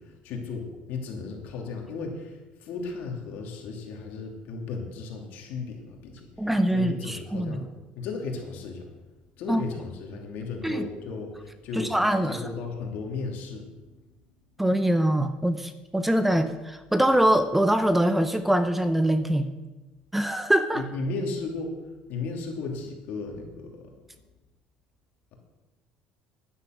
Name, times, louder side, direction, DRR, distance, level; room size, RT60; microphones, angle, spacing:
voice 1, 0.0-7.7 7.9-8.9 9.4-12.0 12.3-13.7 20.7-21.7 22.1-23.9, left 4 dB, 70° left, 2 dB, 2.8 m, -35 dB
voice 2, 6.4-7.7 9.5-9.6 10.6-10.9 11.7-12.4 14.6-19.5 20.1-20.8, right 1 dB, 5° right, 9 dB, 0.7 m, -23 dB
10.5 x 9.7 x 6.4 m, 1.1 s
cardioid pair, 115°, 3 cm